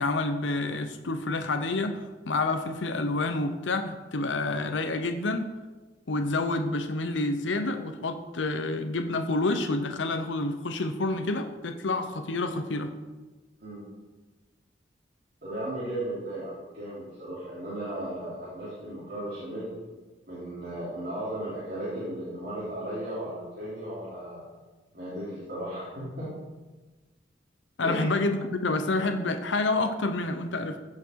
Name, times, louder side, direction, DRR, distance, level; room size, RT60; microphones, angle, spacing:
voice 1, 0.0-5.5 6.1-12.9 27.8-30.8, left 2 dB, 80° left, 7 dB, 0.8 m, -28 dB
voice 2, 15.4-19.7 20.3-24.4 24.9-26.3 27.8-28.1, right 1 dB, 50° right, -10 dB, 3.6 m, -35 dB
15.5 x 5.9 x 4.6 m, 1.2 s
head